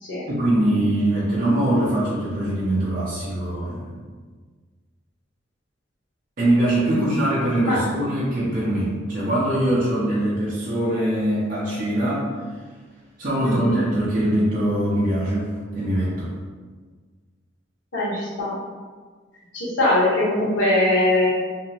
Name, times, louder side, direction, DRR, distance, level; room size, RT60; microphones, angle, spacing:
voice 1, 0.3-3.9 6.4-12.3 13.2-16.3, right 1 dB, 40° right, -9 dB, 0.5 m, -22 dB
voice 2, 13.4-13.8 17.9-18.5 19.5-21.3, left 1 dB, 75° left, -8 dB, 1.0 m, -21 dB
2.6 x 2.0 x 2.7 m, 1.5 s
head